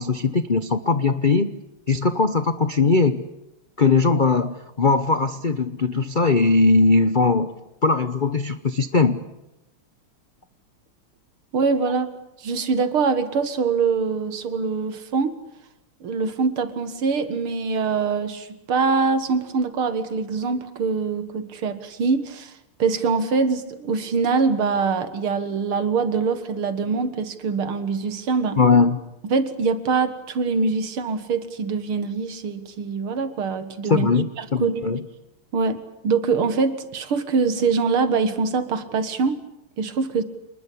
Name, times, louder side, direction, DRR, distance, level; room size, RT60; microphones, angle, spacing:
voice 1, 0.0-1.5 1.9-3.2 3.8-7.5 7.8-9.2 28.6-29.0 33.9-35.0, left 4 dB, 55° left, 11 dB, 0.5 m, -20 dB
voice 2, 11.5-12.1 12.4-15.3 16.0-22.5 22.8-28.6 29.3-34.1 34.4-35.0 35.5-35.8 36.0-39.4 39.8-40.2, right 5 dB, 75° right, 11 dB, 2.5 m, -23 dB
28.0 x 20.5 x 8.6 m, 0.91 s
omnidirectional pair, 2.4 m